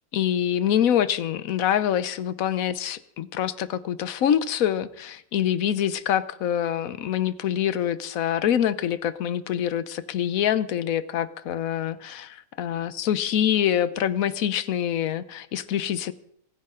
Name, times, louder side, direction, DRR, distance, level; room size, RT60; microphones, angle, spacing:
voice 1, 0.1-16.1, left 10 dB, 90° left, 16 dB, 1.2 m, -25 dB
28.0 x 9.7 x 3.8 m, 0.71 s
omnidirectional pair, 1.4 m